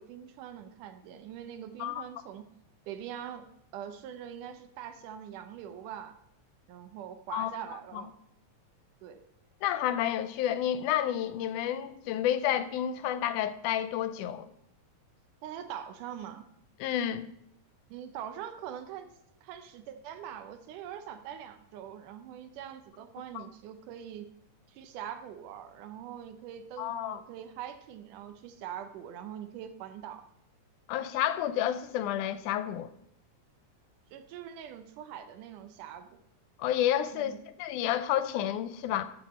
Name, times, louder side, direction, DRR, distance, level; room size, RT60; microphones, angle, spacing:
voice 1, 0.0-2.5 2.9-6.1 6.7-8.1 9.0-9.2 15.4-16.4 17.9-19.1 19.4-24.3 24.7-30.2 34.1-36.2 37.1-37.4, right 9 dB, 90° right, 2.4 m, -43 dB
voice 2, 9.6-14.5 16.8-17.3 23.3-23.4 26.8-27.2 30.9-32.9 36.6-39.0, left 11 dB, 85° left, 2.1 m, -30 dB
13.5 x 6.5 x 4.2 m
omnidirectional pair, 3.6 m